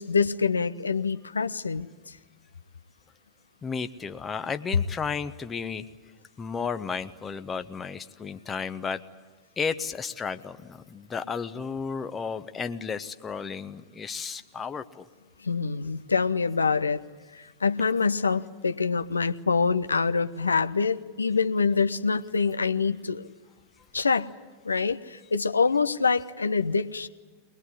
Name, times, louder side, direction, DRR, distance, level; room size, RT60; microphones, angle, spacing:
voice 1, 0.0-2.1 15.4-17.0 17.3-23.3 23.9-24.3 24.6-27.1, left 5 dB, 75° left, 11 dB, 0.9 m, -25 dB
voice 2, 3.6-5.8 6.4-9.0 9.6-15.1, left 5 dB, 20° left, 10 dB, 1.0 m, -33 dB
23.0 x 20.5 x 10.0 m, 1.3 s
figure-of-eight pair, 90°, 0 cm